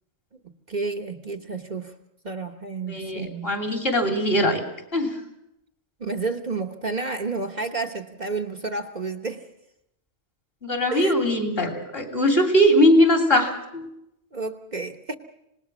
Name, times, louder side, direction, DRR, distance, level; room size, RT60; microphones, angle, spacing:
voice 1, 0.7-1.9 2.2-3.5 6.0-9.4 10.9-11.4 14.3-15.1, right 3 dB, 40° right, 3 dB, 1.2 m, -31 dB
voice 2, 2.9-4.6 4.9-5.1 10.6-13.8, equal, 60° left, 3 dB, 3.4 m, -20 dB
26.0 x 19.5 x 6.1 m, 0.84 s
omnidirectional pair, 1.1 m